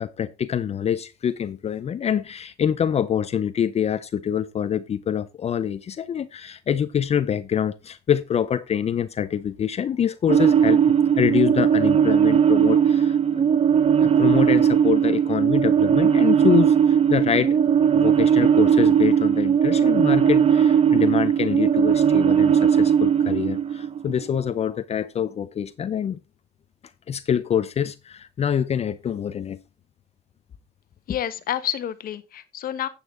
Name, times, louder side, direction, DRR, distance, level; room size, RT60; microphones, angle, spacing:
voice 1, 0.0-13.4 14.0-26.2 27.1-29.6, left 8 dB, 40° left, 0.6 m, -25 dB
sound 1, 10.3-24.4, right 8 dB, 40° right, 0.9 m, -18 dB
voice 2, 31.1-32.9, left 11 dB, 60° left, 1.2 m, -29 dB
9.4 x 8.4 x 3.7 m
cardioid pair, 110°, 17 cm